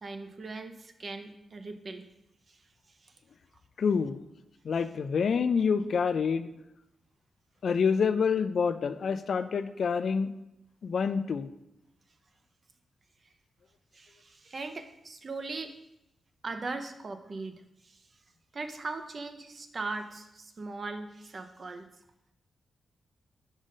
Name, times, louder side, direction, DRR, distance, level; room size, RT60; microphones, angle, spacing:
voice 1, 0.0-2.1 2.5-2.6 3.0-3.1 13.9-15.7 16.4-18.0 18.5-21.9, right 3 dB, 45° right, 7 dB, 0.6 m, -39 dB
voice 2, 3.8-4.2 4.6-6.5 7.6-10.3 10.8-11.5, left 6 dB, 65° left, 11 dB, 0.3 m, -27 dB
5.2 x 5.0 x 3.8 m, 0.87 s
cardioid pair, 100°, 0 cm